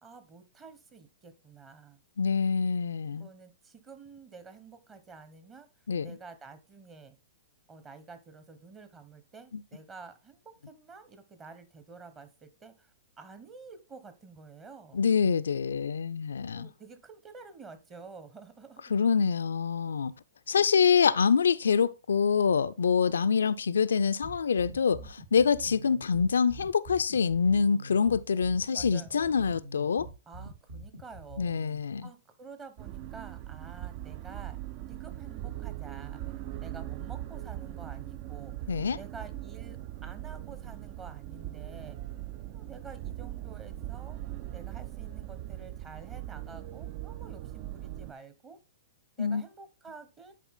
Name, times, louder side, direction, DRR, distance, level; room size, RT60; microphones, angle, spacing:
voice 1, 0.0-2.0 3.1-5.7 6.0-7.2 7.7-12.9 13.2-15.0 16.5-18.9 20.5-20.7 24.8-25.1 28.5-29.4 30.3-31.5 32.0-34.6 34.9-36.2 36.6-38.5 39.0-42.0 42.5-44.2 44.5-48.6 49.2-50.3, right 4 dB, 25° right, 1.2 m, -49 dB
voice 2, 2.2-3.3 5.9-6.1 9.5-9.6 14.9-16.7 18.9-20.1 20.5-30.1 31.4-32.1 38.7-39.0 49.2-49.4, left 6 dB, 75° left, 0.3 m, -26 dB
sound 1, 24.2-31.8, right 1 dB, 65° right, 3.0 m, -45 dB
sound 2, 32.8-48.1, right 13 dB, 45° right, 0.4 m, -40 dB
10.0 x 4.4 x 3.7 m
figure-of-eight pair, 110°, 0 cm